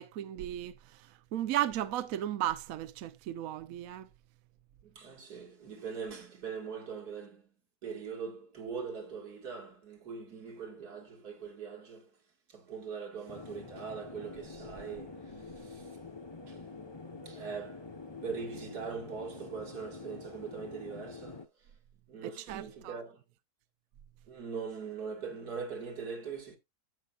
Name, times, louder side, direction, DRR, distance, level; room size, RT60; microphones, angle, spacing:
voice 1, 0.0-4.1 22.2-23.0, right 12 dB, 70° right, 1.0 m, -35 dB
voice 2, 4.8-7.5 7.8-12.1 12.5-16.0 16.5-16.6 17.2-21.7 22.1-23.2 24.3-26.6, right 5 dB, 85° right, 2.5 m, -42 dB
sound 1, 13.3-21.5, left 3 dB, 20° left, 0.8 m, -46 dB
15.0 x 5.7 x 2.4 m
omnidirectional pair, 1.6 m